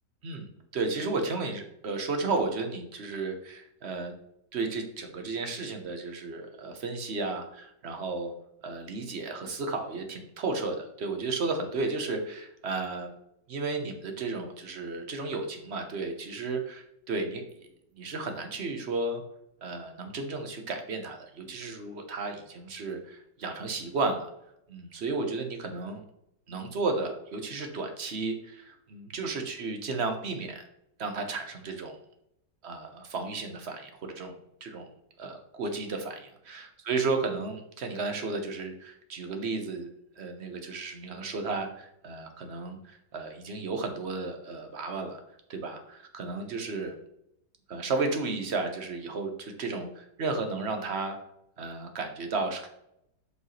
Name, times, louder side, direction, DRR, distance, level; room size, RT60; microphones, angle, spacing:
voice 1, 0.2-4.1 4.5-8.3 8.6-13.1 13.5-17.4 18.0-19.2 19.6-24.3 24.7-26.0 26.5-30.6 31.0-31.9 32.6-34.3 34.6-34.8 35.2-39.9 40.2-45.2 45.5-46.9 47.7-51.2 51.6-52.7, right 3 dB, 45° right, 5 dB, 1.1 m, -33 dB
7.9 x 5.3 x 3.1 m, 0.79 s
omnidirectional pair, 1.9 m